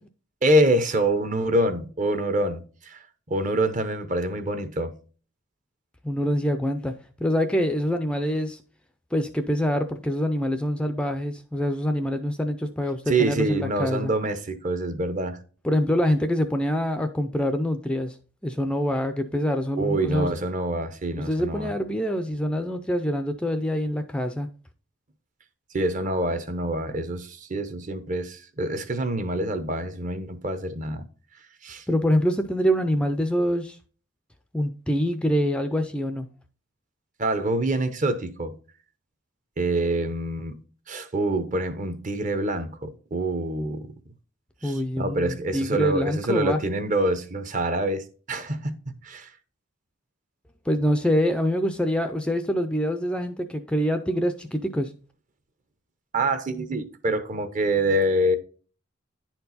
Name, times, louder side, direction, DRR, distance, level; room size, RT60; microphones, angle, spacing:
voice 1, 0.4-3.0 3.3-4.9 13.1-15.4 19.8-21.7 25.7-31.0 31.6-31.8 37.2-38.5 39.6-40.5 40.9-43.9 44.6-48.8 49.0-49.3 56.1-58.4, right 1 dB, 35° right, 0.8 m, -26 dB
voice 2, 6.0-6.9 7.2-8.6 9.1-14.1 15.6-18.2 18.4-20.3 21.2-24.5 31.9-33.8 34.5-36.3 44.6-46.6 50.7-54.9, equal, 5° left, 0.4 m, -25 dB
10.0 x 4.5 x 4.0 m
head